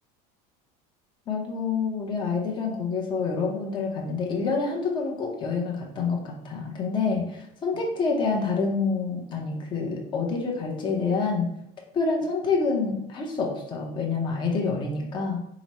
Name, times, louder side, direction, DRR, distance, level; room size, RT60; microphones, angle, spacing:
voice 1, 1.3-11.5 11.9-15.4, left 4 dB, 25° left, 0 dB, 0.6 m, -27 dB
4.9 x 2.0 x 4.1 m, 0.80 s
cardioid pair, 170°, 18 cm